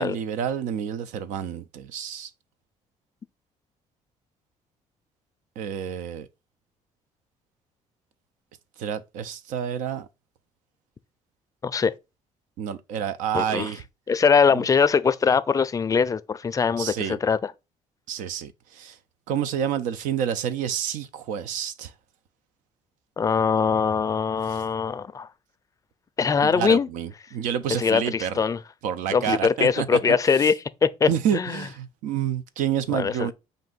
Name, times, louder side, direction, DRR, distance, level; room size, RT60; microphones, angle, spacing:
voice 1, 0.0-2.3 5.6-6.3 8.8-10.1 12.6-13.8 14.5-14.6 16.8-17.2 18.1-19.0 19.3-21.9 24.5-24.6 26.4-28.4 28.8-30.2 31.1-33.3, right 9 dB, 90° right, 0.5 m, -29 dB
voice 2, 11.6-11.9 13.3-13.7 14.1-17.5 23.2-25.3 26.2-26.9 27.8-28.6 29.1-30.6 30.8-31.6 32.9-33.3, left 6 dB, 25° left, 0.4 m, -22 dB
5.1 x 2.6 x 3.9 m
cardioid pair, 100°, 13 cm